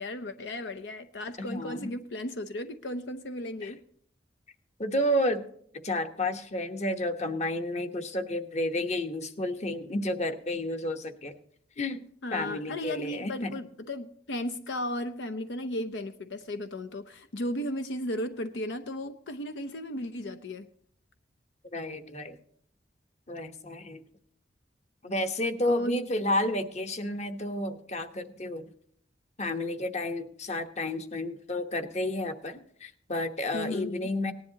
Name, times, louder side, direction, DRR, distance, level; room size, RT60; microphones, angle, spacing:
voice 1, 0.0-3.8 12.2-20.7 25.7-26.0 33.5-34.1, left 1 dB, 75° left, 9 dB, 0.7 m, -35 dB
voice 2, 1.4-1.9 3.6-3.7 4.8-5.4 5.8-11.3 11.8-12.0 12.3-13.5 21.7-22.4 23.3-24.0 25.0-28.6 29.4-34.3, left 1 dB, 40° left, 7 dB, 1.1 m, -31 dB
18.5 x 10.5 x 2.9 m, 0.64 s
head